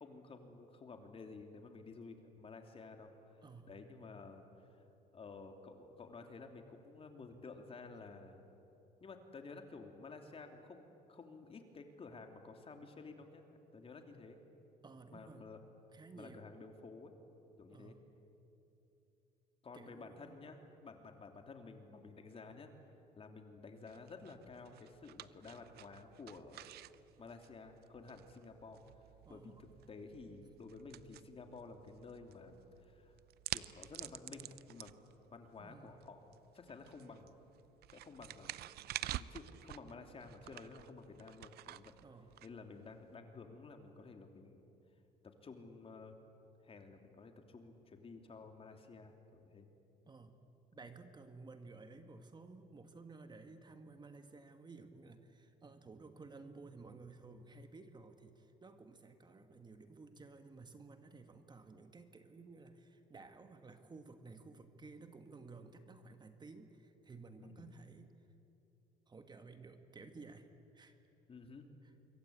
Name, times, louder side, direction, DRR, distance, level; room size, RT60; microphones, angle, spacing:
voice 1, 0.0-3.1 3.7-4.7 5.1-8.4 9.0-14.4 15.1-15.6 16.1-17.1 17.6-18.0 19.6-22.7 23.2-26.6 27.2-28.8 29.3-33.1 33.5-35.0 35.3-36.2 36.5-37.4 37.9-38.6 39.0-41.9 42.4-44.7 45.2-46.1 46.6-49.7 67.4-67.7 71.3-71.7, left 4 dB, 35° left, 5 dB, 3.0 m, -52 dB
voice 2, 3.4-3.9 14.8-15.5 15.9-16.4 17.7-18.0 19.7-20.4 29.3-29.7 35.6-36.0 42.0-42.4 50.1-50.4 50.7-68.1 69.1-70.5 70.7-71.0 71.8-71.9, right 3 dB, 25° right, 7 dB, 1.8 m, -55 dB
sound 1, 23.9-43.1, right 14 dB, 70° right, 0.7 m, -50 dB
26.0 x 23.0 x 8.8 m, 2.9 s
cardioid pair, 110°, 17 cm